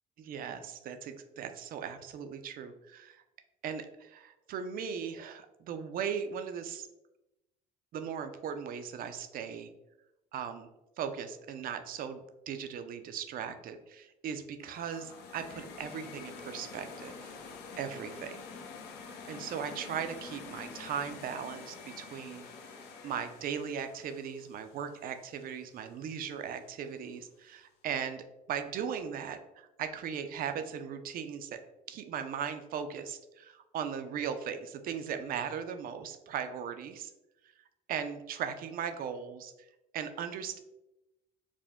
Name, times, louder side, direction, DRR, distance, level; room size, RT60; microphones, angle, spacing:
voice 1, 0.2-3.2 3.6-6.9 7.9-9.7 10.3-10.7 11.0-17.3 17.8-18.4 19.3-22.7 23.0-31.6 31.9-37.1 37.9-39.5 39.9-40.6, right 7 dB, 60° right, 8 dB, 0.5 m, -38 dB
sound 1, 14.6-25.6, left 5 dB, 75° left, 0.6 m, -47 dB
4.9 x 2.2 x 3.5 m, 0.94 s
cardioid pair, 110°, 17 cm